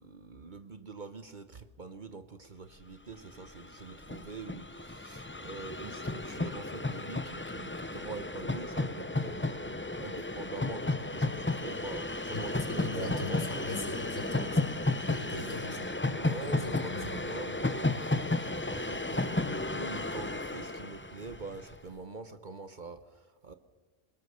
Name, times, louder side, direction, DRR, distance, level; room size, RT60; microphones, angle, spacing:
voice 1, 0.0-14.1 16.0-23.5, right 4 dB, 40° right, 9 dB, 1.0 m, -45 dB
Train, 3.1-3.2 3.4-21.8, left 2 dB, 15° left, 0.4 m, -33 dB
voice 2, 12.8-14.7 15.1-15.9 16.4-17.0, left 1 dB, 80° left, 1 dB, 4.9 m, -39 dB
21.0 x 20.0 x 6.8 m, 1.5 s
omnidirectional pair, 1.3 m